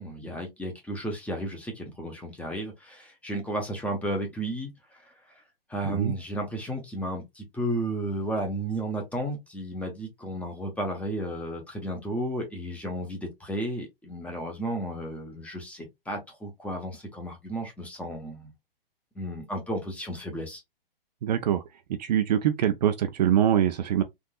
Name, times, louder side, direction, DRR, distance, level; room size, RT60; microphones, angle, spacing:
voice 1, 0.0-5.0 5.7-18.5 19.1-20.6, right 1 dB, 5° left, 0.8 m, -33 dB
voice 2, 21.2-21.6 22.0-24.0, right 10 dB, 45° right, 0.5 m, -24 dB
3.7 x 2.6 x 2.3 m
hypercardioid pair, 130°, 29 cm